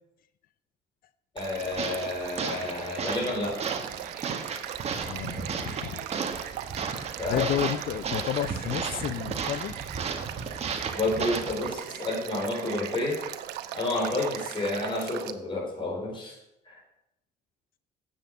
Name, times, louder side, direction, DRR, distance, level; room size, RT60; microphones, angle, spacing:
voice 1, 1.3-3.6 7.2-7.5 10.9-13.2 13.7-16.4 16.6-16.8, left 2 dB, 30° left, -1 dB, 4.9 m, -30 dB
Male speech man speaking / Stream / Trickle dribble, 1.4-15.3, right 12 dB, 85° right, 0.8 m, -39 dB
sound 1, 1.6-11.8, right 5 dB, 40° right, 1.5 m, -34 dB
sound 2, 2.9-14.9, right 7 dB, 55° right, 1.8 m, -45 dB
voice 2, 5.0-5.4 5.8-6.0 7.3-9.8, left 11 dB, 60° left, 14 dB, 0.5 m, -31 dB
10.0 x 8.2 x 6.7 m, 0.85 s
cardioid pair, 110°, 17 cm